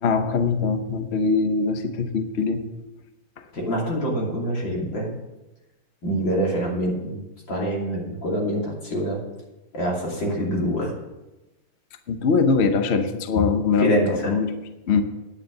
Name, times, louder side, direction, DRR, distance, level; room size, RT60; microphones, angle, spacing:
voice 1, 0.0-2.6 12.1-14.5 14.9-15.0, left 5 dB, 50° left, 8 dB, 0.8 m, -22 dB
voice 2, 3.5-5.1 6.0-7.2 7.5-9.2 9.7-10.9 13.8-14.3, right 1 dB, 65° left, -2 dB, 3.6 m, -25 dB
9.8 x 9.2 x 6.5 m, 1.0 s
omnidirectional pair, 2.2 m